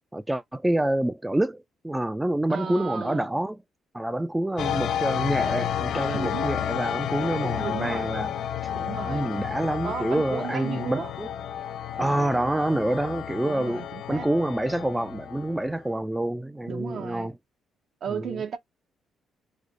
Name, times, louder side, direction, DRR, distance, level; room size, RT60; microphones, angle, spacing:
voice 1, 0.1-3.6 3.9-8.3 9.1-11.3 12.0-13.8 14.1-17.3 18.1-18.4, right 1 dB, 10° right, 0.3 m, -27 dB
voice 2, 2.5-3.3 6.1-6.5 7.4-8.2 8.7-9.3 9.8-11.1 12.0-12.4 13.4-14.3 16.6-17.3 18.0-18.6, right 7 dB, 60° right, 0.8 m, -35 dB
sound 1, 4.6-15.8, left 9 dB, 75° left, 0.4 m, -31 dB
3.2 x 2.0 x 3.6 m
cardioid pair, 90°, 0 cm